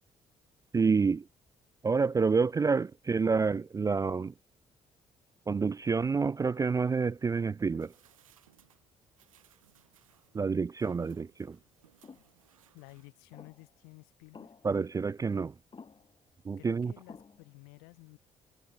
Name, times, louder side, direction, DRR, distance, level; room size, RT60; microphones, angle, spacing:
voice 1, 0.7-1.2 1.8-4.3 5.5-7.9 10.3-11.6 14.6-15.5 16.5-16.9, right 5 dB, 20° right, 0.3 m, -28 dB
sound 1, 7.8-13.4 13.8-13.9, right 10 dB, 85° right, 1.2 m, -65 dB
sound 2, 12.0-12.3 13.3-13.7 14.3-14.9 15.7-16.2 17.1-17.6, left 5 dB, 30° left, 1.0 m, -52 dB
voice 2, 12.7-14.5 16.6-18.2, left 35 dB, 70° left, 1.6 m, -53 dB
figure-of-eight pair, 40°, 17 cm